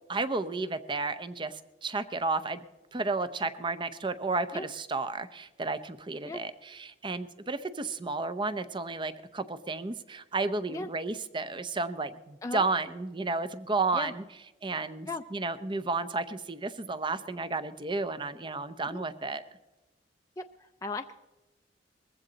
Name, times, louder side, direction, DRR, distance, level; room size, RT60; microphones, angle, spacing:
voice 1, 0.1-2.6 2.9-14.2 14.6-19.4, right 3 dB, 25° right, 13 dB, 0.7 m, -32 dB
voice 2, 20.4-21.1, left 2 dB, 20° left, 5 dB, 0.4 m, -37 dB
20.5 x 15.0 x 4.0 m, 1.1 s
head